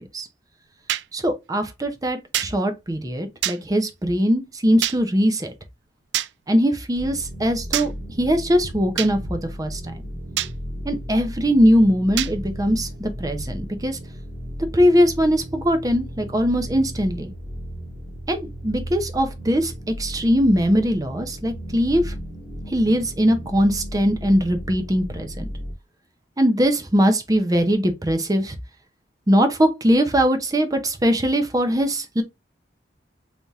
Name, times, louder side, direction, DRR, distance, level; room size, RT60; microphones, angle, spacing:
sound 1, 0.9-1.1 2.3-2.5 3.4-3.6 4.8-5.0 6.1-6.3 7.7-7.9 9.0-9.1 10.4-10.5 12.2-12.3, right 13 dB, 70° right, 0.3 m, -24 dB
voice 1, 1.1-5.5 6.5-7.9 8.2-9.9 10.8-14.0 14.7-17.3 18.3-18.4 18.6-19.7 20.0-22.1 22.7-25.5 26.4-28.5 29.3-32.2, equal, 20° right, 0.6 m, -21 dB
sound 2, 6.9-25.7, equal, 40° right, 2.0 m, -35 dB
3.4 x 2.8 x 3.4 m
head